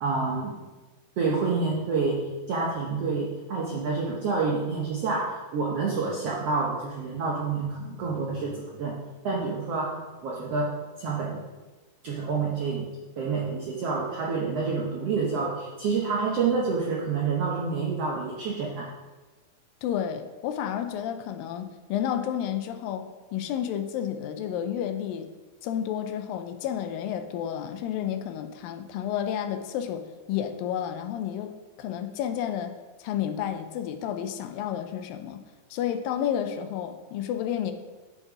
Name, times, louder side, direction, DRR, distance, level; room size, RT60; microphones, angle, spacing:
voice 1, 0.0-0.6 1.2-11.4 12.0-12.9 13.2-18.9, right 4 dB, 75° right, -2 dB, 1.4 m, -28 dB
voice 2, 19.8-23.0 23.3-25.3 25.6-31.5 31.8-32.7 33.0-35.4 35.7-37.7, left 9 dB, 80° left, 8 dB, 2.3 m, -31 dB
9.8 x 5.4 x 4.8 m, 1.2 s
omnidirectional pair, 4.1 m